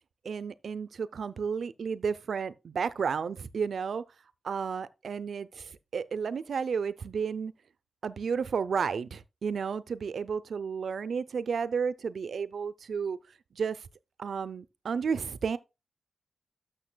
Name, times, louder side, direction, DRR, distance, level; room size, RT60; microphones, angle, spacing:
voice 1, 0.2-4.0 4.4-7.5 8.0-13.2 13.5-13.9 14.2-15.6, right 6 dB, 65° right, 0.5 m, -32 dB
12.5 x 6.6 x 2.3 m
wide cardioid pair, 125°, 0 cm